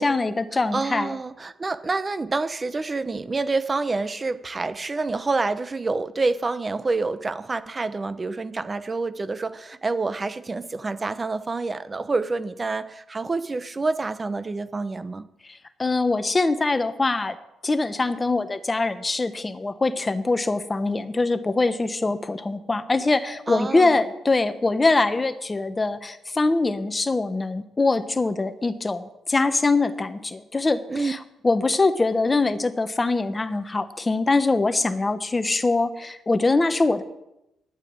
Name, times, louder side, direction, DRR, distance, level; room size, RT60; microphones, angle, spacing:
voice 1, 0.0-1.1 15.5-17.4 17.6-37.0, left 3 dB, 20° left, 10 dB, 1.2 m, -23 dB
voice 2, 0.7-15.3 23.5-24.0 30.9-31.1, right 3 dB, 25° right, 13 dB, 0.9 m, -27 dB
11.5 x 9.0 x 8.8 m, 0.87 s
cardioid pair, 90°, 0 cm